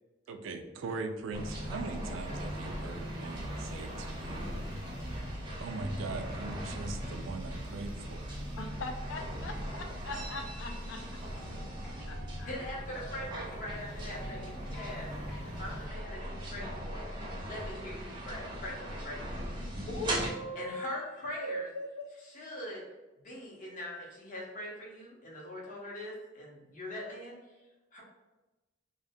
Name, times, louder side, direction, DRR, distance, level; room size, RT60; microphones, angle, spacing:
voice 1, 0.3-4.7 5.6-8.4, right 3 dB, 90° right, 8 dB, 0.3 m, -41 dB
sound 1, 1.3-15.9, equal, 60° left, 1.4 m, -44 dB
sound 2, 1.3-20.3, equal, 25° right, 0.5 m, -40 dB
voice 2, 8.6-11.0 12.1-12.5 19.9-21.0 21.4-22.1, left 1 dB, 80° left, 4 dB, 0.4 m, -40 dB
sound 3, 11.3-16.9, right 3 dB, 20° left, 1.0 m, -53 dB
voice 3, 12.4-17.0 17.4-19.4 20.5-21.7 22.2-22.8 23.2-27.4 27.9-28.0, left 1 dB, 45° left, -4 dB, 0.8 m, -42 dB
2.6 x 2.1 x 2.6 m, 1.1 s
head